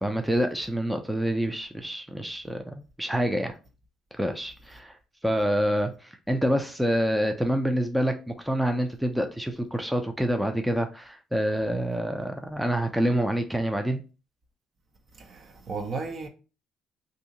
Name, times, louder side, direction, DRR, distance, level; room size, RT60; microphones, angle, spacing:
voice 1, 0.0-3.6 4.2-4.9 5.2-14.0, equal, 5° right, 0.5 m, -27 dB
voice 2, 15.2-16.3, right 4 dB, 50° right, 0.7 m, -34 dB
2.7 x 2.6 x 3.7 m
hypercardioid pair, 55°, 0 cm